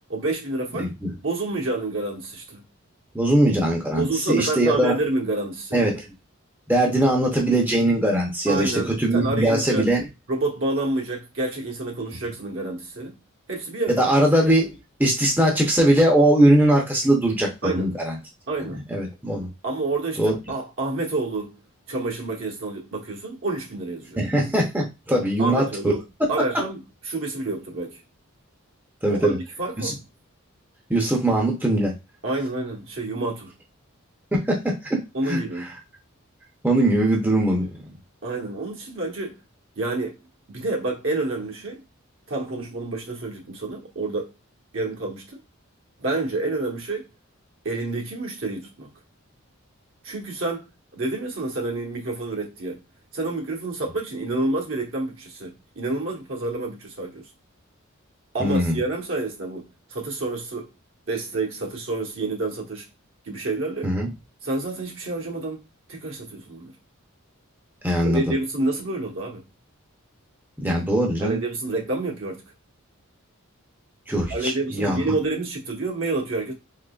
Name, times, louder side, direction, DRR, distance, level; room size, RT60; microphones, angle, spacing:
voice 1, 0.1-0.9 1.2-2.6 4.0-5.9 8.5-9.9 10.3-13.1 13.5-14.1 17.6-17.9 18.5-18.8 19.6-21.6 21.9-24.2 25.4-26.0 26.3-26.8 27.0-28.0 29.1-30.0 32.2-33.5 35.1-35.7 38.2-39.4 39.8-40.2 40.5-41.8 42.3-44.3 44.7-45.4 46.0-47.1 47.6-48.9 50.0-52.8 53.1-57.3 58.3-60.7 61.1-62.9 63.2-63.9 64.4-65.6 65.9-66.7 68.0-69.4 71.2-72.4 74.3-76.5, right 2 dB, 65° right, 1.0 m, -28 dB
voice 2, 0.8-1.1 3.1-4.9 5.7-6.0 6.7-10.1 13.9-14.7 15.0-18.2 18.9-19.5 20.2-20.3 24.2-25.9 29.0-29.4 29.8-30.0 30.9-31.9 34.3-35.0 35.3-35.4 36.6-37.8 58.4-58.8 63.8-64.1 67.8-68.2 70.6-71.4 74.1-75.0, right 1 dB, 10° right, 0.6 m, -21 dB
3.8 x 2.9 x 2.3 m
head